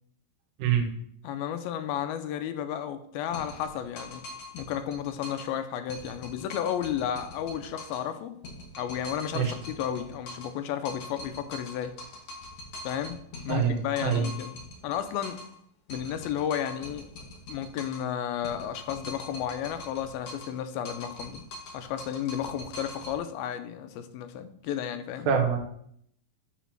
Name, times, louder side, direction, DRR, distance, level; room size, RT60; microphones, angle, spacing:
voice 1, 0.6-0.9 9.3-9.5 13.5-14.3 25.3-25.6, right 7 dB, 65° right, 3 dB, 2.3 m, -25 dB
voice 2, 1.2-4.2 4.5-8.4 8.8-12.0 12.8-13.2 13.4-14.5 14.8-15.4 15.9-17.1 17.5-21.4 21.7-25.3, left 9 dB, 90° left, 9 dB, 2.5 m, -33 dB
sound 1, 3.3-5.6 5.9-8.1 8.4-10.6 10.8-15.6 15.9-18.1 18.4-20.6 20.8-23.2, left 2 dB, 55° left, 1.8 m, -43 dB
7.3 x 4.1 x 5.8 m, 0.67 s
omnidirectional pair, 4.1 m